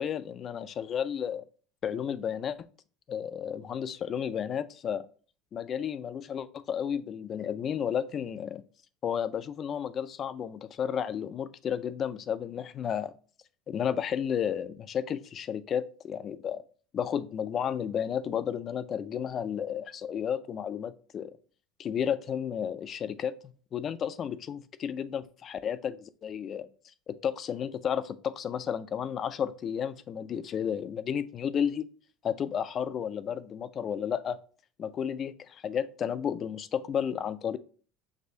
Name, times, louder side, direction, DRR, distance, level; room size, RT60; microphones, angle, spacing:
voice 1, 0.0-1.4 1.8-2.6 3.1-5.0 5.5-8.6 9.0-13.1 13.7-16.6 16.9-21.4 21.8-23.3 23.7-26.7 27.1-31.9 32.2-34.4 34.8-37.6, left 8 dB, 40° left, 13 dB, 0.4 m, -32 dB
6.1 x 2.6 x 2.6 m, 0.40 s
supercardioid pair, 115°, 0 cm